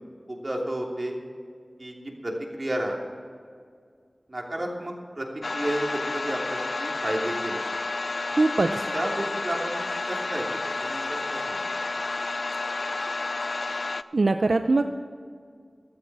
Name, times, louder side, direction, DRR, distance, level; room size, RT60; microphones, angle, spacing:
voice 1, 0.3-1.2 1.8-3.0 4.3-5.3 5.5-7.6 8.6-11.8, right 1 dB, 45° right, -1 dB, 3.0 m, -32 dB
sound 1, 5.4-14.0, left 3 dB, 75° left, 0.4 m, -30 dB
voice 2, 8.3-8.7 14.1-15.0, right 3 dB, 80° right, 7 dB, 0.5 m, -22 dB
15.0 x 12.5 x 4.8 m, 2.1 s
wide cardioid pair, 40°, 0 cm